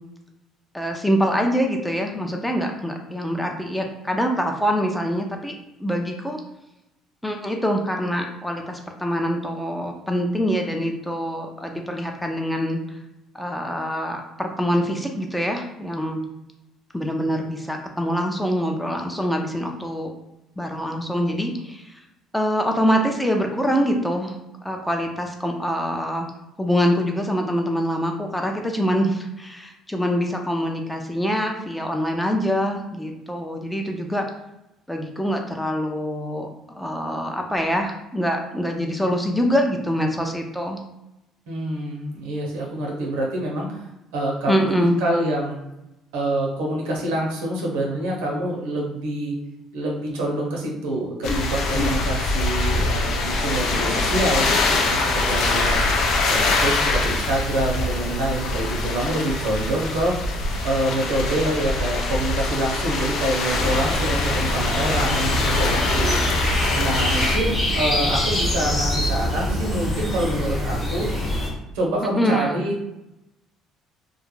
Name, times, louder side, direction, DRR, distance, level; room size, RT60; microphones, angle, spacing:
voice 1, 0.7-5.5 5.8-6.4 7.2-13.0 13.3-16.2 16.9-20.1 20.6-22.0 22.3-26.3 26.6-34.3 34.9-40.8 44.5-45.0 72.2-72.5, equal, 5° left, 2 dB, 0.4 m, -24 dB
voice 2, 41.5-43.8 44.1-44.6 45.0-45.6 46.1-49.3 49.7-55.8 56.2-60.4 60.6-66.2 66.7-71.1 71.7-72.8, right 1 dB, 90° right, -1 dB, 0.7 m, -26 dB
sound 1, 51.2-67.4, left 3 dB, 65° left, 0.4 m, -23 dB
sound 2, 63.5-71.5, left 1 dB, 30° left, 0.9 m, -25 dB
2.3 x 2.1 x 3.0 m, 0.91 s
supercardioid pair, 90°, 0 cm